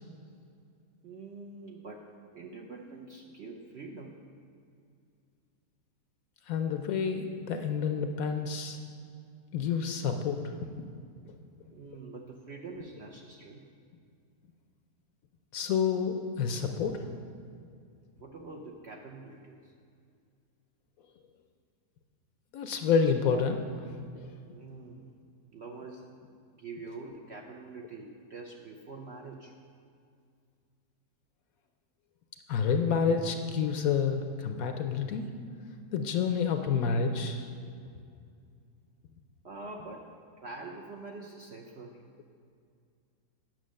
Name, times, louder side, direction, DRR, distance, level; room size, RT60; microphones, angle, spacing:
voice 1, 1.0-2.1 2.3-4.2 11.7-13.6 18.2-19.7 24.5-25.1 25.5-26.1 26.5-29.5 39.4-40.1 40.4-42.0, right 3 dB, 60° right, 0 dB, 0.7 m, -45 dB
voice 2, 6.5-8.8 9.5-10.8 15.5-17.0 22.5-23.6 24.2-24.3 32.5-35.3 35.9-37.5, left 6 dB, 70° left, 6 dB, 0.9 m, -29 dB
9.2 x 6.2 x 6.3 m, 2.4 s
omnidirectional pair, 1.8 m